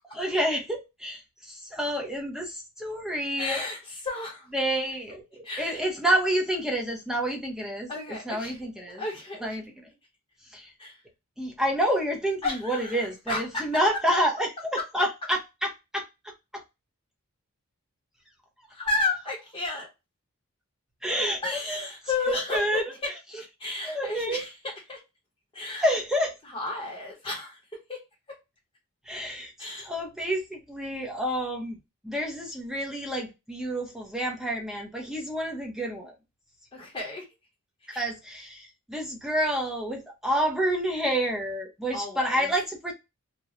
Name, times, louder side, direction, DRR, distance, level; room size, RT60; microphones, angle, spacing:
voice 1, 0.1-3.6 4.5-7.9 8.2-9.0 9.4-9.6 10.5-10.7 11.4-16.0 16.5-16.6 21.0-21.8 22.2-22.8 23.8-24.4 25.8-26.4 29.1-29.5 29.8-31.8 32.0-36.1 37.9-42.9, equal, ahead, 0.8 m, -28 dB
voice 2, 3.4-4.5 5.4-5.8 7.9-8.6 9.0-9.6 10.8-11.0 12.4-13.6 18.7-19.9 21.4-24.5 24.9-25.0 25.5-25.8 26.4-27.6 27.9-28.0 29.6-29.9 36.7-37.2 37.9-38.1 41.9-42.5, left 3 dB, 25° left, 0.9 m, -33 dB
3.0 x 2.2 x 2.4 m
head